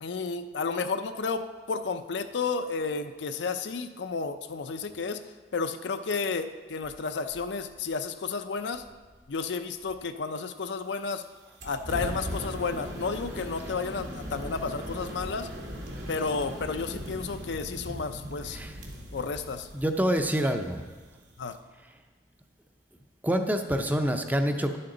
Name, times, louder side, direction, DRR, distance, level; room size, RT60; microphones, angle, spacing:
voice 1, 0.0-5.2 5.5-8.8 9.3-11.2 11.6-15.5 16.1-18.6 19.1-19.7 21.4-21.6, left 4 dB, 75° left, 9 dB, 0.5 m, -32 dB
sound 1, 11.6-21.6, equal, 85° right, 2.0 m, -39 dB
voice 2, 19.7-20.8 23.2-24.8, equal, 10° right, 6 dB, 0.6 m, -26 dB
11.0 x 8.7 x 3.9 m, 1.3 s
head